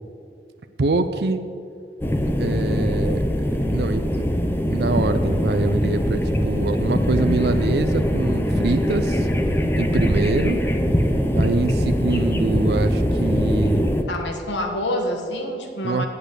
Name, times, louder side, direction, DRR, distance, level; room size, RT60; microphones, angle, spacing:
voice 1, 0.8-1.4 2.4-9.3 9.8-10.6 11.4-13.9 15.8-16.0, right 3 dB, 65° right, 8 dB, 0.5 m, -25 dB
sound 1, 2.0-14.0, equal, 10° left, 0.6 m, -22 dB
voice 2, 14.1-16.1, left 1 dB, 90° left, 3 dB, 1.6 m, -27 dB
8.9 x 8.3 x 8.1 m, 2.4 s
head